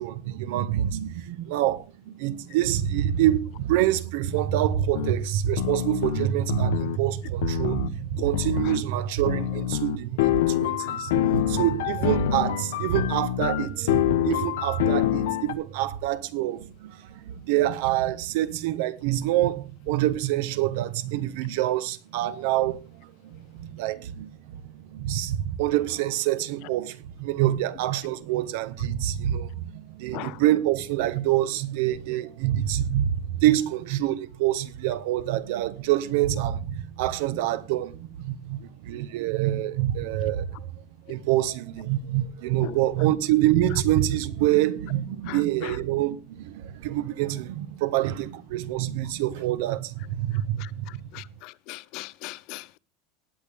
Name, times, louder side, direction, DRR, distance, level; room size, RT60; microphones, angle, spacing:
voice 1, 0.0-40.7 41.1-51.1, right 13 dB, 65° right, 1.2 m, -26 dB
sound 1, 4.9-5.1 5.6-7.0 7.4-7.9 8.3-8.8 9.3-15.5, left 12 dB, 90° left, 1.1 m, -26 dB
voice 2, 45.3-45.8 50.6-52.8, left 20 dB, 45° left, 0.5 m, -40 dB
19.0 x 8.5 x 3.6 m
supercardioid pair, 170°, 0 cm